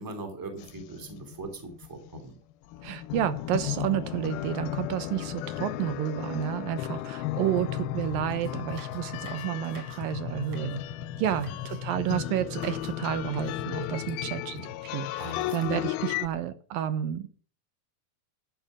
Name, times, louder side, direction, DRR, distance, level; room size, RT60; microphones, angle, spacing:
voice 1, 0.0-2.4 11.2-11.5 14.2-14.7 15.2-15.9, right 2 dB, 5° right, 5 dB, 2.0 m, -41 dB
sound 1, 0.6-2.3 2.7-16.3, left 13 dB, 85° left, 2.6 m, -35 dB
voice 2, 2.8-10.8 11.2-17.3, right 11 dB, 75° right, 12 dB, 2.6 m, -31 dB
sound 2, 8.3-10.0 10.3-10.8 11.2-11.8 12.5-13.0 13.3-13.6, right 4 dB, 45° right, 4.0 m, -50 dB
13.5 x 8.8 x 6.2 m, 0.41 s
omnidirectional pair, 4.2 m